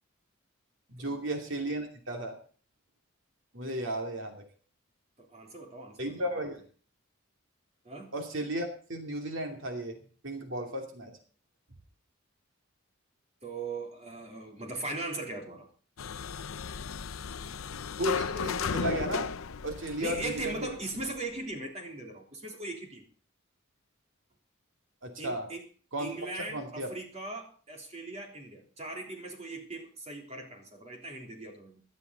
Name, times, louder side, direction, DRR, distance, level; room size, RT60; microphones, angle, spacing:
voice 1, 0.9-2.4 3.5-4.3 6.0-6.6 8.1-10.0 10.2-11.1 18.0-19.3 19.6-20.6 25.0-25.5 25.9-26.1 26.5-26.9, right 1 dB, 65° right, 3 dB, 2.7 m, -34 dB
voice 2, 5.2-6.4 7.8-8.1 13.4-15.7 20.0-23.1 25.2-25.7 26.0-31.8, right 2 dB, 30° right, 2 dB, 3.5 m, -39 dB
sound 1, 16.0-21.2, left 6 dB, 85° left, 0.6 m, -35 dB
17.5 x 11.5 x 4.1 m, 0.42 s
head